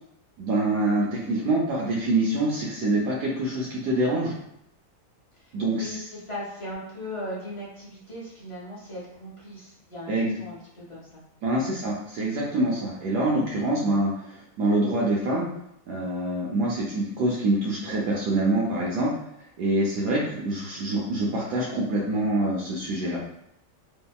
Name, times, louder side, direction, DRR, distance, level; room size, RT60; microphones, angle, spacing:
voice 1, 0.4-4.3 5.5-5.9 10.1-10.3 11.4-15.5 15.9-19.1 19.6-23.2, right 1 dB, 75° right, -4 dB, 1.1 m, -25 dB
voice 2, 5.3-10.1 10.4-11.2, left 1 dB, 35° left, -7 dB, 0.5 m, -38 dB
2.7 x 2.7 x 2.2 m, 0.78 s
omnidirectional pair, 1.8 m